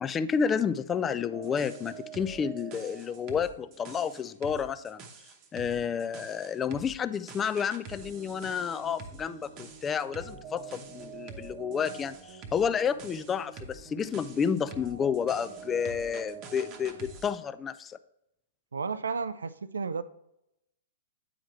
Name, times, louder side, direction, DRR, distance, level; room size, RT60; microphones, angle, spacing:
voice 1, 0.0-5.0 5.5-18.0, left 7 dB, 20° left, 13 dB, 0.3 m, -30 dB
sound 1, 1.3-17.3, right 5 dB, 35° right, 0.9 m, -45 dB
voice 2, 18.7-20.0, right 5 dB, 75° right, 14 dB, 0.3 m, -32 dB
8.7 x 4.9 x 3.1 m, 0.84 s
figure-of-eight pair, 110°, 0 cm